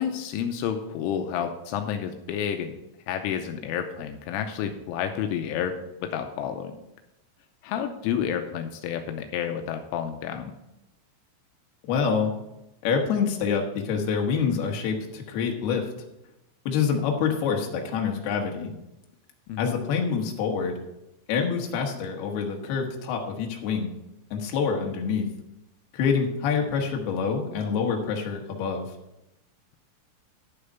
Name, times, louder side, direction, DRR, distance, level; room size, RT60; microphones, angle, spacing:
voice 1, 0.0-2.8 3.1-6.7 7.6-10.5 19.5-19.8, left 8 dB, 85° left, 6 dB, 3.2 m, -30 dB
voice 2, 11.8-12.3 12.8-15.8 16.7-18.7 19.6-20.8 21.3-23.9 24.3-25.3 25.9-28.9, left 6 dB, 65° left, 1 dB, 3.0 m, -26 dB
11.5 x 6.8 x 5.4 m, 0.90 s
omnidirectional pair, 5.7 m